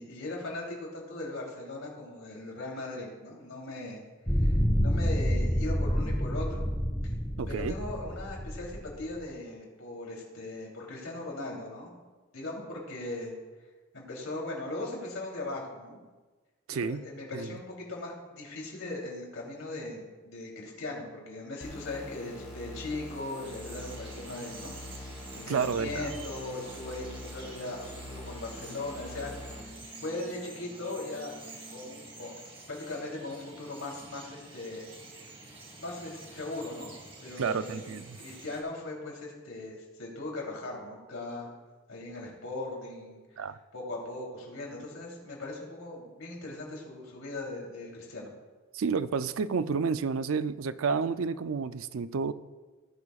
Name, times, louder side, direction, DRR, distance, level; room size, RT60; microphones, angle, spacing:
voice 1, 0.0-4.0 4.3-4.6 4.8-6.7 7.5-11.9 12.3-13.3 13.9-16.0 16.7-24.7 25.3-29.3 29.6-29.7 30.0-31.3 31.7-34.9 35.8-36.9 37.2-41.5 41.9-43.2 43.7-48.3, left 2 dB, 80° left, -2 dB, 3.3 m, -39 dB
sound 1, 4.3-9.2, equal, 10° left, 1.1 m, -28 dB
voice 2, 7.4-7.8 16.7-17.0 17.3-17.6 25.5-26.1 37.4-38.2 43.4-43.6 48.7-52.3, right 5 dB, 80° right, 13 dB, 0.5 m, -30 dB
sound 2, 21.6-29.6, left 1 dB, 30° left, 2.4 m, -44 dB
Bird vocalization bird call bird song, 22.5-38.6, right 2 dB, 25° right, 1.9 m, -48 dB
17.0 x 11.0 x 2.4 m, 1.3 s
head